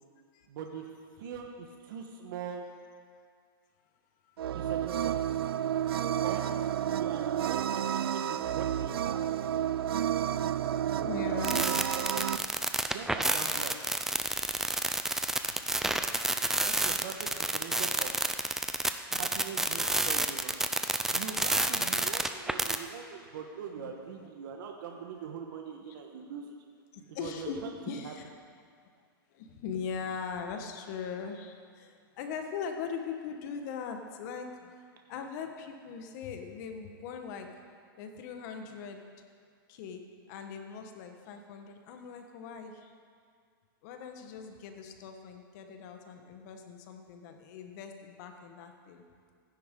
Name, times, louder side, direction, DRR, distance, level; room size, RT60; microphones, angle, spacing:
voice 1, 0.5-2.7 4.5-5.2 6.2-6.4 6.8-9.3 10.8-12.2 12.9-13.8 16.6-18.1 19.1-20.5 21.1-26.5 27.2-28.1, right 7 dB, 65° right, 2 dB, 1.3 m, -42 dB
sound 1, 4.4-12.4, right 10 dB, 90° right, 0.4 m, -31 dB
voice 2, 10.3-11.6 15.3-15.7 19.1-19.2 19.7-19.8 21.7-21.9 23.8-23.9 24.2-24.6 26.9-27.6 27.8-28.2 29.3-37.5 38.0-39.0 39.7-42.9 43.8-49.0, left 6 dB, 50° left, 5 dB, 1.4 m, -41 dB
sound 2, 11.4-22.8, right 2 dB, 5° right, 0.4 m, -29 dB
16.0 x 10.0 x 3.8 m, 2.1 s
hypercardioid pair, 135°, 12 cm